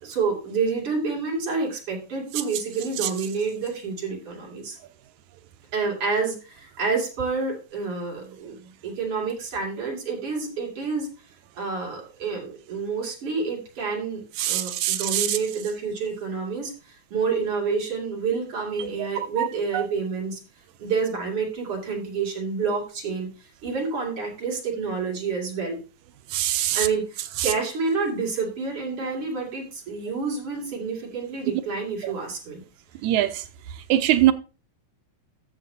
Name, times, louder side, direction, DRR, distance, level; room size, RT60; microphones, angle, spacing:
voice 1, 0.0-4.8 5.7-11.1 11.6-20.4 20.8-23.3 23.6-25.8 26.7-32.6, right 4 dB, 45° right, 3.3 m, -28 dB
voice 2, 14.4-15.4 18.8-18.9 19.2-19.5 19.7-19.9 26.3-26.9 27.4-27.5 32.0-32.1 33.0-33.4 33.9-34.3, right 13 dB, 80° right, 1.9 m, -23 dB
13.5 x 7.4 x 2.7 m
omnidirectional pair, 3.5 m